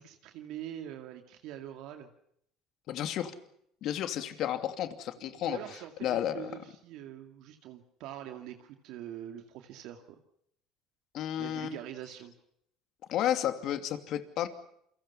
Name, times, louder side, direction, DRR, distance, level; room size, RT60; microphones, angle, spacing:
voice 1, 0.0-2.1 5.2-10.2 11.4-12.3, right 11 dB, 70° right, 5 dB, 2.2 m, -44 dB
voice 2, 2.9-3.3 3.8-5.6 6.0-6.5 11.1-11.8 13.1-14.5, left 11 dB, 60° left, 8 dB, 2.7 m, -32 dB
29.0 x 24.0 x 5.7 m, 0.72 s
supercardioid pair, 80°, 0 cm